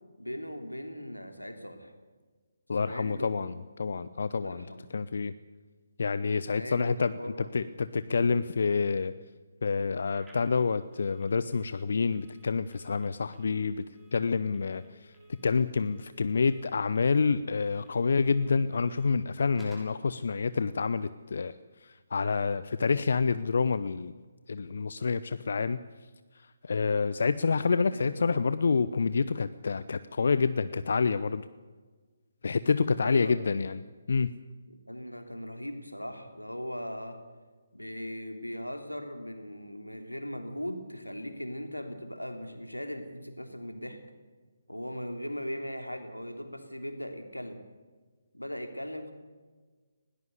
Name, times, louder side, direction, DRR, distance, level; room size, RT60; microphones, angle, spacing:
voice 1, 0.2-1.9 2.8-3.4 4.4-4.9 6.5-7.6 27.8-28.5 33.0-33.5 34.7-37.2 37.7-44.0 44.7-47.6 48.3-49.1, equal, 90° left, 6 dB, 3.2 m, -39 dB
voice 2, 2.7-4.6 4.9-5.3 6.0-9.1 9.6-13.9 14.1-15.1 15.4-21.6 21.8-24.1 24.5-25.8 26.6-31.4 32.4-33.8 34.1-34.3, left 5 dB, 55° left, 14 dB, 0.7 m, -28 dB
Telephone, 10.1-20.0, right 1 dB, 5° right, 6.6 m, -58 dB
20.5 x 17.5 x 8.2 m, 1.4 s
figure-of-eight pair, 140°, 0 cm